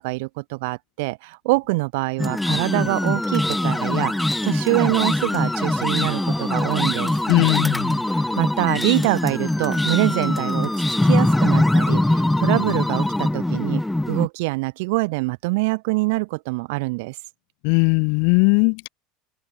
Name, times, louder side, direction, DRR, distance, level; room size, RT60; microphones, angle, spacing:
voice 1, 0.0-7.1 8.1-10.7 11.0-17.2, right 25 dB, 65° right, 0.5 m, -25 dB
sound 1, 2.2-14.3, left 1 dB, 5° left, 1.5 m, -22 dB
voice 2, 7.3-8.0 17.6-18.9, left 40 dB or more, 65° left, 0.8 m, -19 dB
hypercardioid pair, 80°, 0 cm